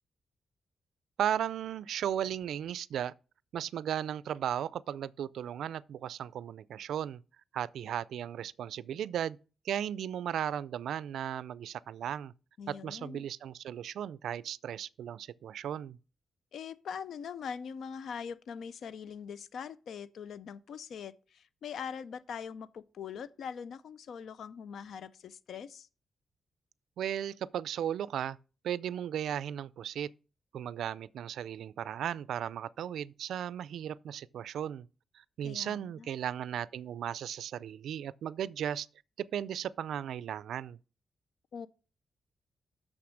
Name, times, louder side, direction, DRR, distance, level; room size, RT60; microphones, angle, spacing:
voice 1, 1.2-3.1 3.5-7.2 7.5-9.4 9.6-12.3 12.7-16.0 27.0-28.4 28.6-30.1 30.5-34.9 35.1-38.9 39.2-40.8, right 10 dB, 85° right, 0.3 m, -36 dB
voice 2, 12.6-13.3 16.5-25.9 35.4-36.1 41.5-41.7, left 7 dB, 75° left, 0.5 m, -42 dB
6.5 x 5.9 x 6.3 m
cardioid pair, 105°, 0 cm